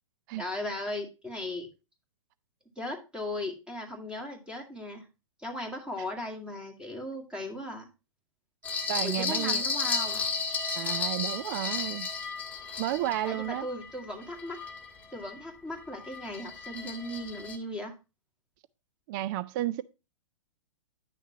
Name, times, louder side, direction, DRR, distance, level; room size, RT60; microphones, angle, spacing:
voice 1, 0.4-1.7 2.7-5.0 5.4-7.9 9.0-10.2 13.3-14.6 15.1-17.9, left 1 dB, 5° right, 1.8 m, -37 dB
sound 1, 8.6-15.3 15.8-17.6, left 4 dB, 10° left, 1.5 m, -33 dB
voice 2, 8.9-9.6 10.8-12.1 12.8-13.7 19.1-19.8, right 14 dB, 40° right, 0.4 m, -32 dB
10.0 x 6.4 x 2.8 m
hypercardioid pair, 125°, 17 cm